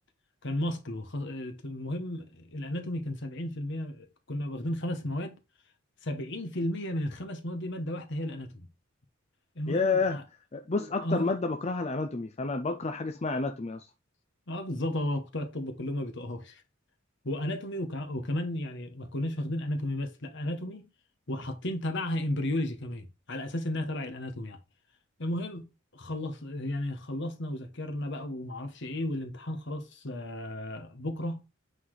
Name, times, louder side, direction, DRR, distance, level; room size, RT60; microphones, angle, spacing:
voice 1, 0.4-5.3 6.0-8.7 9.5-10.2 10.7-11.3 14.5-16.6 17.2-20.9 21.3-24.6 25.2-31.4, left 1 dB, 60° left, 1.4 m, -34 dB
voice 2, 9.7-10.2 10.5-13.9, left 3 dB, 30° left, 0.5 m, -29 dB
8.4 x 4.0 x 4.8 m
head